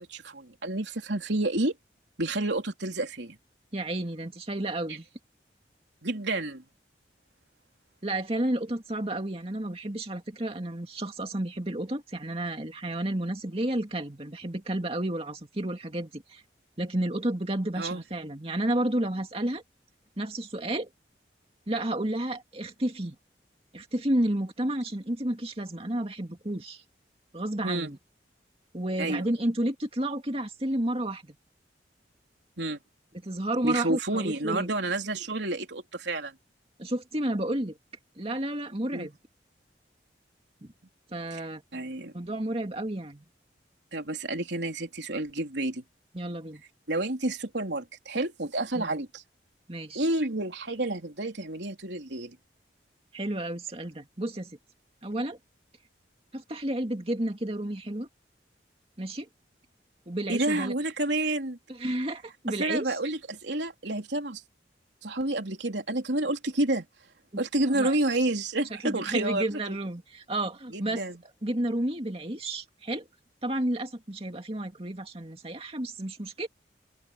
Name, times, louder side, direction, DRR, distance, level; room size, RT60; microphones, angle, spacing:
voice 1, 0.0-1.8 2.2-3.4 4.9-5.0 6.0-6.6 17.8-18.0 27.6-27.9 29.0-29.3 32.6-32.8 33.6-36.3 38.9-39.1 41.3-41.4 41.7-42.1 43.9-45.8 46.9-49.2 50.0-52.4 60.3-61.6 62.5-64.4 65.0-66.9 67.4-69.8 70.7-71.2, right 2 dB, 75° right, 3.5 m, -29 dB
voice 2, 3.7-5.1 8.0-16.4 16.8-19.6 20.2-20.9 21.7-23.2 23.7-26.8 27.3-28.0 28.7-31.4 33.2-34.7 36.8-37.8 38.2-39.2 40.6-40.7 41.1-41.6 42.1-43.2 46.1-46.6 48.8-48.9 49.7-50.0 53.1-54.6 55.0-55.4 56.3-58.1 59.0-59.3 60.1-60.7 61.7-63.0 67.3-67.4 67.7-68.0 68.8-71.0 71.4-73.1 73.4-76.5, right 1 dB, 35° right, 2.3 m, -31 dB
open air
head